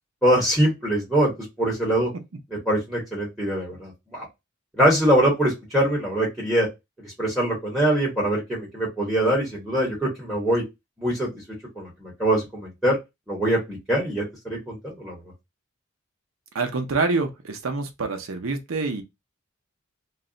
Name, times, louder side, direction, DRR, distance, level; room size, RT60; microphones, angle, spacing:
voice 1, 0.2-1.3 1.6-2.1 2.5-4.3 4.7-6.7 7.0-10.6 11.0-11.3 11.8-13.0 13.3-15.2, right 1 dB, ahead, 0.9 m, -23 dB
voice 2, 16.5-19.0, right 3 dB, 75° right, 0.6 m, -26 dB
2.3 x 2.1 x 3.7 m
head